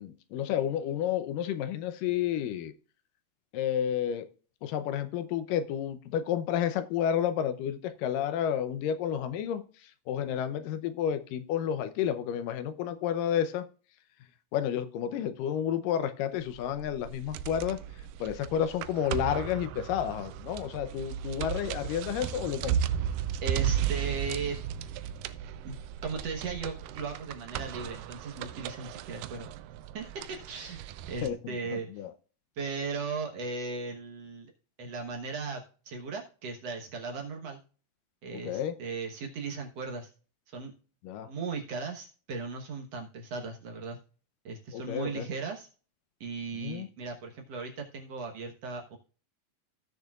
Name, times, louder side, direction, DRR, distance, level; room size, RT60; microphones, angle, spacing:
voice 1, 0.0-2.7 3.5-4.3 4.6-13.6 14.5-17.8 18.2-22.8 31.2-32.1 38.3-38.8 41.0-41.3 44.7-45.3 46.5-46.9, left 9 dB, 85° left, 11 dB, 2.4 m, -31 dB
sound 1, 16.5-31.3, right 10 dB, 85° right, 2.2 m, -35 dB
voice 2, 23.4-24.6 25.6-25.8 26.0-29.5 29.9-30.8 31.1-31.9 32.6-34.5 34.8-37.6 38.2-40.1 40.5-40.7 41.3-44.0 44.5-45.7 46.2-49.0, right 4 dB, 60° right, 1 dB, 2.1 m, -37 dB
16.5 x 6.6 x 2.4 m, 0.37 s
omnidirectional pair, 3.8 m